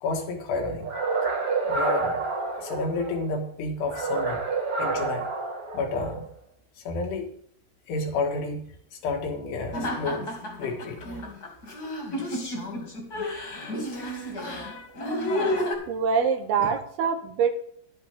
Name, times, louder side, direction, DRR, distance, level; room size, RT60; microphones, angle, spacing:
voice 1, 0.0-0.9 1.6-4.4 4.8-5.3 5.7-6.3 6.9-7.3 7.9-10.3 10.6-11.0 14.0-14.3 14.6-14.9 15.3-15.8 16.6-16.8, left 3 dB, 80° left, 2 dB, 3.8 m, -31 dB
sound 1, 0.8-3.2 3.8-6.3, right 4 dB, 40° right, 2.5 m, -28 dB
sound 2, 9.7-15.7, left 1 dB, 30° left, 2.1 m, -31 dB
voice 2, 15.9-17.5, right 6 dB, 75° right, 7 dB, 2.9 m, -24 dB
11.5 x 10.5 x 3.6 m, 0.64 s
omnidirectional pair, 4.8 m